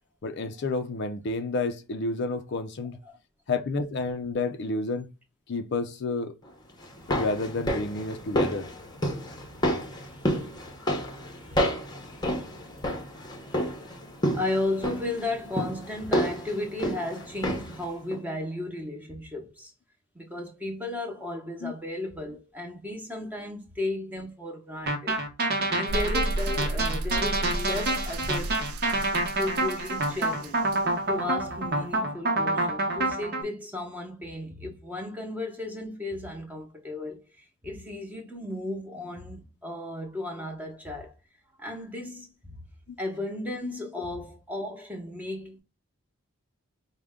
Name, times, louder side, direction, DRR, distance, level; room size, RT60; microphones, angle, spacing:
voice 1, 0.2-3.0 3.5-5.1 5.5-6.3 7.1-8.7 21.6-21.7 42.9-43.0, left 3 dB, 50° left, 0.4 m, -30 dB
sound 1, 6.8-17.8 18.1-18.2, equal, 20° left, 0.8 m, -30 dB
voice 2, 9.8-10.6 11.4-11.8 12.1-12.3 13.4-13.7 14.3-19.7 20.1-25.2 25.7-28.6 29.4-30.6 31.1-41.1 41.6-42.6 43.0-45.6, left 2 dB, 5° right, 0.9 m, -35 dB
sound 2, 24.9-33.4, right 2 dB, 45° right, 0.9 m, -27 dB
sound 3, 25.9-32.0, right 2 dB, 85° right, 0.4 m, -34 dB
4.9 x 2.2 x 3.5 m
head